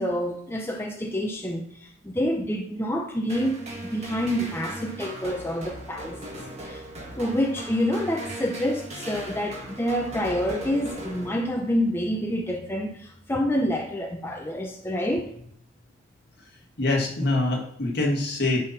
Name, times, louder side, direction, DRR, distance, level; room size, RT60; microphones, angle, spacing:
voice 1, 0.0-3.6 3.9-6.2 6.6-6.8 7.1-15.3, equal, 10° left, 1 dB, 0.6 m, -27 dB
sound 1, 3.3-11.8, right 1 dB, 35° right, 1.9 m, -38 dB
voice 2, 16.8-18.6, left 2 dB, 55° left, 0 dB, 1.8 m, -24 dB
10.0 x 4.1 x 4.1 m, 0.66 s
head